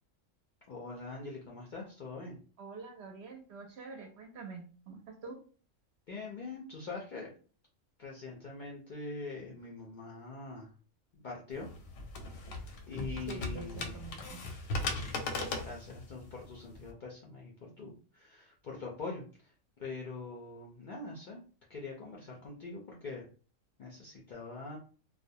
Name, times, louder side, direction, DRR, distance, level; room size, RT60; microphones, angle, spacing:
voice 1, 0.7-2.4 6.1-7.3 8.0-10.7 11.1-11.7 12.9-14.0 14.8-15.2 15.6-19.5 19.8-21.4 21.7-23.3 23.8-24.8, left 3 dB, 65° left, -3 dB, 0.5 m, -43 dB
voice 2, 2.6-5.4 13.3-14.5, right 5 dB, 65° right, 3 dB, 0.7 m, -46 dB
sound 1, 11.5-16.9, left 2 dB, 90° left, 1.0 m, -38 dB
2.4 x 2.0 x 2.6 m, 0.39 s
omnidirectional pair, 1.3 m